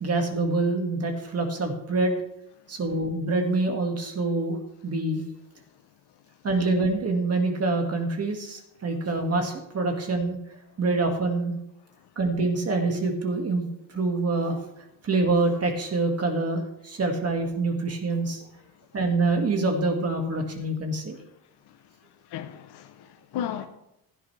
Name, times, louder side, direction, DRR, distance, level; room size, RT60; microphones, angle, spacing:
voice 1, 0.0-2.2 2.7-4.6 4.8-5.2 6.4-10.4 10.8-11.6 12.2-13.6 13.9-14.6 15.0-18.4 18.9-21.2, right 3 dB, 30° right, 2.0 m, -26 dB
voice 2, 22.3-23.7, left 9 dB, 60° left, 0.9 m, -34 dB
16.0 x 10.0 x 3.4 m
cardioid pair, 140°, 46 cm